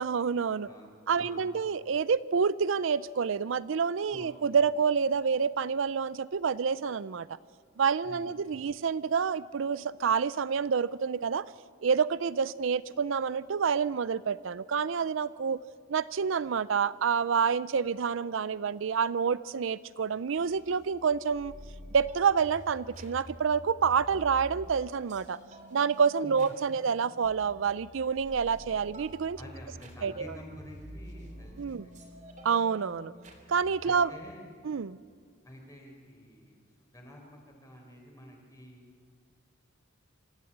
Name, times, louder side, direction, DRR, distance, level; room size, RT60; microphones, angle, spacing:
voice 1, 0.0-0.7 1.1-7.4 7.8-11.4 11.8-15.6 15.9-21.5 21.9-25.4 25.7-29.4 30.0-30.3 31.6-31.9 32.4-33.1 33.5-34.1 34.6-35.0, right 6 dB, 70° right, 17 dB, 0.5 m, -28 dB
voice 2, 0.6-1.5 4.1-4.3 8.0-8.7 26.2-26.8 29.4-32.0 33.0-33.2 33.8-34.4 35.4-38.9, equal, 15° left, 1 dB, 4.4 m, -50 dB
sound 1, 20.4-34.1, equal, 35° right, 3.1 m, -49 dB
26.5 x 14.0 x 8.6 m, 2.2 s
head